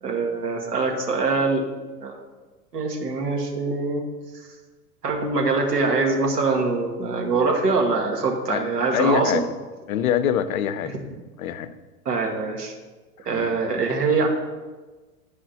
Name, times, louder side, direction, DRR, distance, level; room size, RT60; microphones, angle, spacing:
voice 1, 0.0-1.6 2.0-2.1 2.7-4.0 5.0-9.4 12.1-12.7 13.3-14.3, right 3 dB, 75° right, 1 dB, 1.8 m, -23 dB
voice 2, 8.5-9.6 9.9-10.9 11.4-11.7 13.3-13.5, left 8 dB, 60° left, 12 dB, 0.7 m, -25 dB
10.0 x 5.0 x 4.2 m, 1.3 s
figure-of-eight pair, 100°, 48 cm